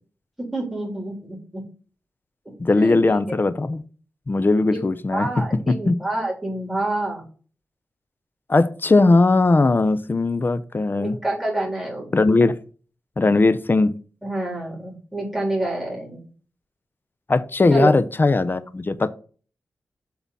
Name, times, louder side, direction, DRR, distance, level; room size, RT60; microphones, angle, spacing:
voice 1, 0.4-1.6 2.8-3.2 4.7-4.8 5.1-7.2 11.0-12.1 14.2-16.3 17.7-18.0, right 2 dB, ahead, 3.5 m, -27 dB
voice 2, 2.6-3.8 4.3-6.0 8.5-11.2 12.1-12.6 13.2-14.0 17.3-19.1, left 3 dB, 40° left, 0.8 m, -19 dB
7.2 x 4.0 x 5.6 m
cardioid pair, 50°, 6 cm